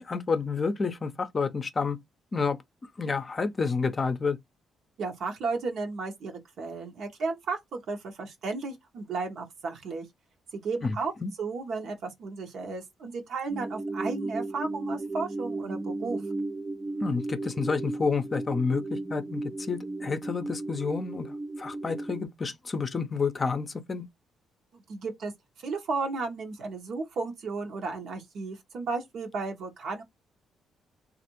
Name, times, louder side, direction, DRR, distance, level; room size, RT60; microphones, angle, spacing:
voice 1, 0.0-2.0 2.3-2.6 3.0-4.4 10.8-11.3 17.0-24.0, left 4 dB, 35° left, 0.5 m, -29 dB
voice 2, 5.0-10.1 10.5-11.1 11.4-16.2 24.7-25.3 25.6-30.0, right 4 dB, 70° right, 1.0 m, -34 dB
sound 1, 13.5-22.2, right 2 dB, 20° right, 0.3 m, -35 dB
3.2 x 2.5 x 3.0 m
cardioid pair, 90°, 0 cm